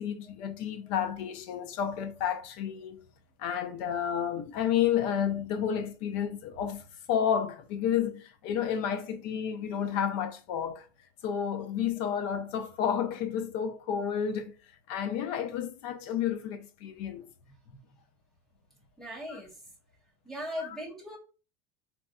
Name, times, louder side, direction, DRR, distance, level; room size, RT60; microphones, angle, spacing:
voice 1, 0.0-3.0 3.4-10.9 11.2-14.5 14.9-17.3 19.3-19.4 20.6-20.8, left 8 dB, 55° left, 0.5 m, -31 dB
voice 2, 19.0-19.5 20.2-21.2, equal, ahead, 1.1 m, -38 dB
4.0 x 2.2 x 2.3 m
supercardioid pair, 165°, 10 cm